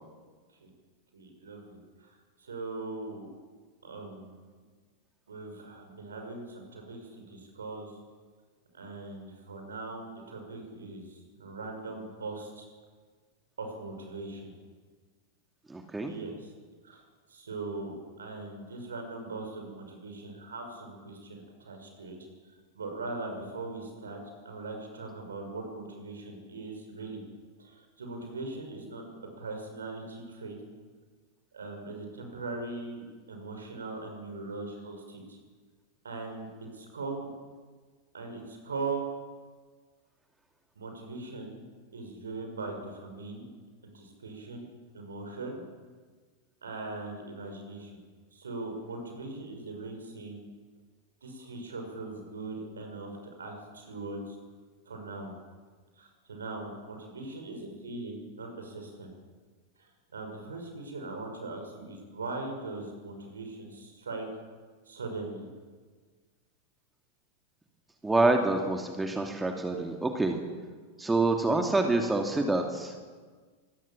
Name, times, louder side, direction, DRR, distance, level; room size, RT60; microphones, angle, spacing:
voice 1, 1.1-3.3 3.8-4.4 5.3-7.9 8.7-12.7 13.6-14.5 16.1-16.5 16.8-17.0 17.3-22.2 22.4-27.2 27.6-29.0 29.4-30.6 31.5-35.4 36.0-36.5 36.7-37.3 38.1-39.1 40.8-41.6 41.9-43.5 43.8-44.7 44.9-45.7 46.6-48.0 48.3-50.4 51.2-54.4 54.9-55.3 56.0-59.1 59.8-64.3 64.9-65.5, right 3 dB, 70° right, 4 dB, 6.3 m, -40 dB
voice 2, 15.7-16.1 68.0-70.4 71.0-72.9, right 2 dB, 10° right, 4 dB, 2.6 m, -27 dB
25.0 x 20.0 x 7.4 m, 1.5 s
figure-of-eight pair, 90°, 0 cm